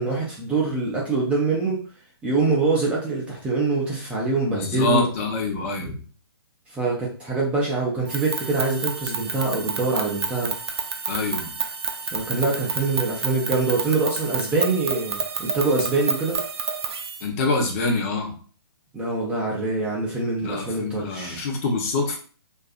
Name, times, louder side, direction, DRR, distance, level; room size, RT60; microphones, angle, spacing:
voice 1, 0.0-1.8 2.2-5.1 6.7-10.5 12.0-16.4 18.9-21.5, right 3 dB, 10° right, -4 dB, 0.4 m, -24 dB
voice 2, 4.5-6.0 11.1-11.5 17.2-18.3 20.4-22.2, left 3 dB, 35° left, 1 dB, 0.7 m, -25 dB
sound 1, 8.0-17.2, right 4 dB, 80° right, 0.5 m, -30 dB
2.5 x 2.5 x 2.4 m, 0.41 s
hypercardioid pair, 140°, 13 cm